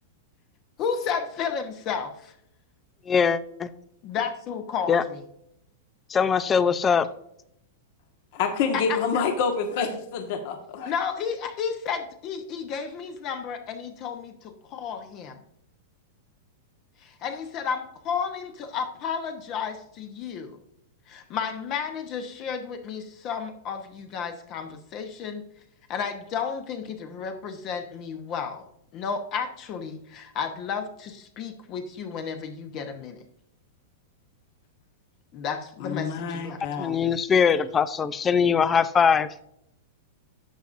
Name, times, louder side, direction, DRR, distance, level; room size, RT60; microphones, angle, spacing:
voice 1, 0.8-2.3 4.0-5.2 8.7-9.0 10.8-15.4 17.0-20.6 21.1-25.4 25.9-28.7 28.9-33.2 35.3-36.6, left 6 dB, 30° left, 0.9 m, -32 dB
voice 2, 3.1-3.7 4.9-5.0 6.1-7.1 36.8-39.3, left 6 dB, 15° left, 0.4 m, -21 dB
voice 3, 8.3-10.9 35.8-37.1, left 5 dB, 50° left, 1.3 m, -27 dB
11.0 x 7.1 x 2.6 m
supercardioid pair, 160°, 0 cm